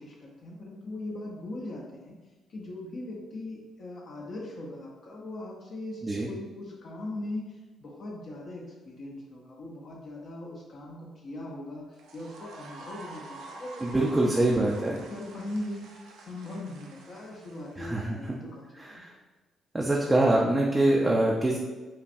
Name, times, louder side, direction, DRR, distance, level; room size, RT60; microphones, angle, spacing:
voice 1, 0.0-2.2 2.5-15.9 16.3-19.0, left 1 dB, 55° left, -2 dB, 0.7 m, -40 dB
sound 1, 11.9-18.3, right 3 dB, 90° right, 0.5 m, -48 dB
voice 2, 13.8-15.0 17.8-18.4 18.8-19.1 19.7-21.6, right 1 dB, 20° right, -2 dB, 0.4 m, -24 dB
5.3 x 2.2 x 2.6 m, 1.2 s
cardioid pair, 90°, 0 cm